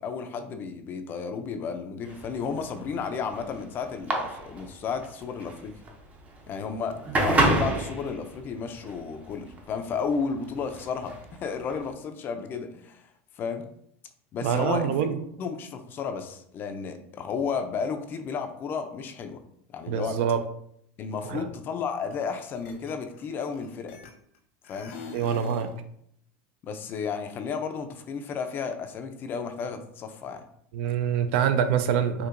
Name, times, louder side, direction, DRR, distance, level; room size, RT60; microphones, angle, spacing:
voice 1, 0.0-5.7 6.5-11.1 11.4-13.0 13.4-13.7 14.3-15.1 15.4-19.4 19.7-20.2 21.0-24.0 24.7-25.0 26.6-30.4, left 5 dB, 30° left, 7 dB, 0.4 m, -33 dB
sound 1, 2.1-11.9, right 2 dB, 20° right, 0.6 m, -29 dB
voice 2, 14.4-15.2 19.9-20.4 21.3-21.5 25.1-25.7 30.7-32.3, right 8 dB, 65° right, 9 dB, 0.4 m, -25 dB
sound 2, 22.1-22.3 22.6-24.4 24.6-25.8, left 4 dB, 75° left, 0.9 m, -44 dB
4.5 x 2.7 x 2.5 m, 0.70 s
supercardioid pair, 140°, 7 cm